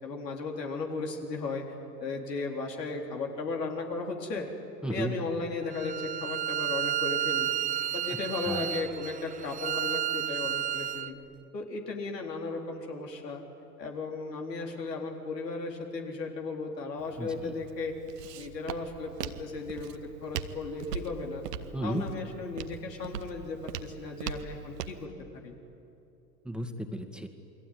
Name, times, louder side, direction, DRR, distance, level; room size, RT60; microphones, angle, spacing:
voice 1, 0.0-1.6 2.0-4.5 4.9-7.5 7.9-11.2 11.5-13.4 13.8-17.9 18.3-21.4 21.8-25.5, left 3 dB, 85° left, 1 dB, 4.0 m, -36 dB
voice 2, 4.8-5.2 8.4-8.8 17.2-17.5 21.7-22.0 26.4-27.3, right 1 dB, ahead, 5 dB, 2.0 m, -34 dB
Bowed string instrument, 5.7-11.1, right 10 dB, 15° right, 0.5 m, -32 dB
Walk footsteps, 17.0-25.1, right 8 dB, 75° right, 1.5 m, -41 dB
29.0 x 22.0 x 9.4 m, 2.8 s
hypercardioid pair, 90°, 48 cm